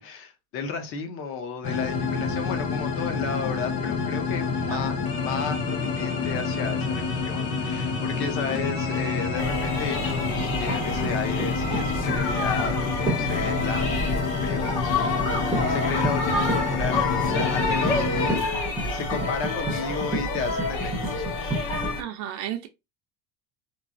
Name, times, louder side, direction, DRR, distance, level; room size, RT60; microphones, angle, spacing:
voice 1, 0.0-18.3 18.8-21.5, left 5 dB, 40° left, 0.7 m, -33 dB
sound 1, 1.6-18.4, left 4 dB, 90° left, 1.4 m, -28 dB
sound 2, 9.4-22.0, left 2 dB, 65° left, 1.8 m, -28 dB
sound 3, 9.4-12.3 13.1-13.3 14.4-14.7 15.2-15.3 15.5-15.8 16.0-21.9, right 1 dB, 10° right, 0.6 m, -33 dB
voice 2, 22.0-22.7, right 11 dB, 55° right, 0.5 m, -33 dB
3.0 x 2.7 x 2.5 m
cardioid pair, 180°, 34 cm